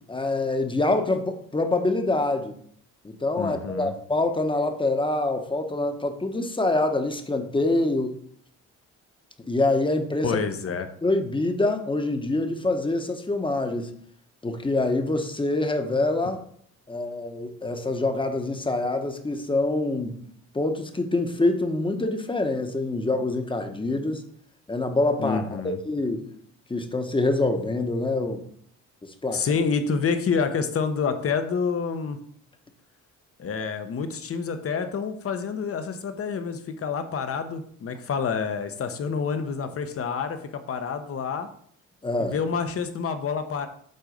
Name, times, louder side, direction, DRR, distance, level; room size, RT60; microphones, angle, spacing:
voice 1, 0.1-2.6 3.0-8.1 9.5-10.4 11.0-13.9 14.4-16.4 16.9-20.2 20.5-24.2 24.7-26.2 26.7-28.4 29.2-29.4 42.0-42.4, left 2 dB, 15° left, 6 dB, 1.0 m, -25 dB
voice 2, 3.4-3.9 10.2-10.9 25.2-25.8 29.3-32.2 33.4-41.5 42.2-43.7, left 5 dB, 50° left, 8 dB, 1.0 m, -28 dB
7.9 x 3.7 x 5.2 m, 0.63 s
cardioid pair, 90°, 30 cm